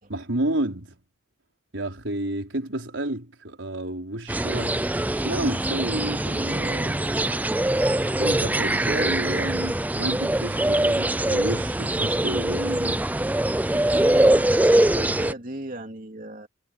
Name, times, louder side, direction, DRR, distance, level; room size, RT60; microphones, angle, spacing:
voice 1, 0.1-1.0 1.7-7.1 8.2-13.0 13.7-13.8, right 1 dB, 85° right, 4.5 m, -31 dB
sound 1, 4.3-15.3, right 1 dB, 10° right, 0.5 m, -23 dB
voice 2, 13.9-16.5, right 1 dB, 45° right, 3.1 m, -36 dB
head